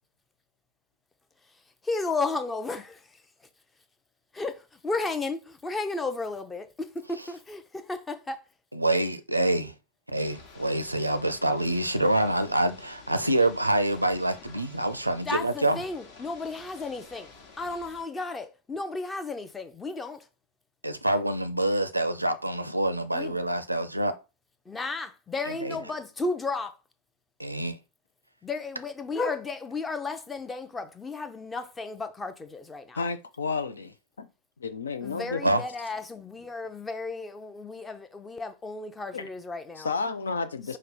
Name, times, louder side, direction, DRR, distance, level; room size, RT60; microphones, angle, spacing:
voice 1, 1.8-2.9 4.3-8.4 15.3-20.3 23.1-23.4 24.7-26.8 28.4-33.0 35.0-39.9, left 3 dB, 15° left, 0.6 m, -33 dB
voice 2, 8.7-9.7 10.1-15.8 20.8-24.1 25.5-25.8 27.4-27.8 35.4-35.6, right 1 dB, 85° right, 0.4 m, -26 dB
Ocean / Boat Water vehicle, 10.2-18.0, left 4 dB, 45° left, 1.0 m, -50 dB
voice 3, 32.9-34.3 34.6-35.6 39.1-39.3 39.8-40.8, left 4 dB, 70° left, 0.4 m, -32 dB
5.1 x 2.1 x 4.2 m
figure-of-eight pair, 90°, 0 cm